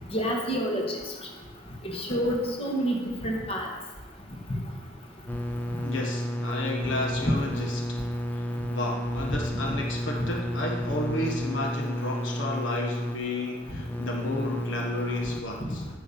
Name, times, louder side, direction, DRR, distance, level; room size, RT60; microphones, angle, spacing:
voice 1, 0.1-0.8 1.9-3.7 7.3-7.4, equal, 30° left, 0 dB, 1.6 m, -27 dB
sound 1, 5.3-15.4, equal, 10° left, 0.4 m, -32 dB
voice 2, 5.8-8.0 8.3-15.8, left 2 dB, 65° left, 0 dB, 1.2 m, -32 dB
9.3 x 7.5 x 5.4 m, 1.2 s
head